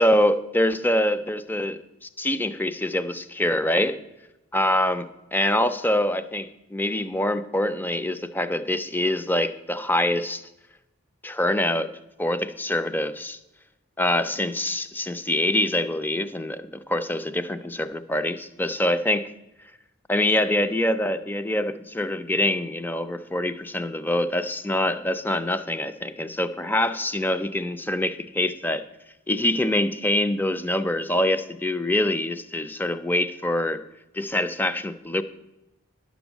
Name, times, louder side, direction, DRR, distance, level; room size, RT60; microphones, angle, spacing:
voice 1, 0.0-4.0 4.5-10.4 11.2-11.9 12.2-13.4 14.0-19.3 20.1-28.8 29.3-33.8 34.1-35.2, left 1 dB, 10° left, 11 dB, 0.4 m, -25 dB
11.0 x 6.2 x 8.1 m, 0.96 s
head